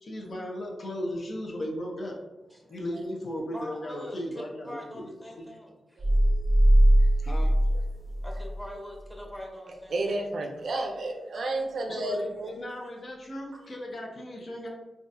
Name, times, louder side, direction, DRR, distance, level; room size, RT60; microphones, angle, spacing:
voice 1, 0.0-2.2 2.7-5.5 7.2-7.5 11.9-14.7, equal, 55° left, -1 dB, 0.8 m, -36 dB
voice 2, 3.5-4.2 4.6-6.0 8.2-10.2, equal, 5° left, -1 dB, 0.9 m, -42 dB
sound 1, 6.0-8.7, right 1 dB, 25° right, 0.5 m, -21 dB
voice 3, 9.9-12.5, right 2 dB, 75° right, 2 dB, 0.5 m, -31 dB
3.8 x 2.4 x 2.6 m, 1.0 s
cardioid pair, 75°, 0 cm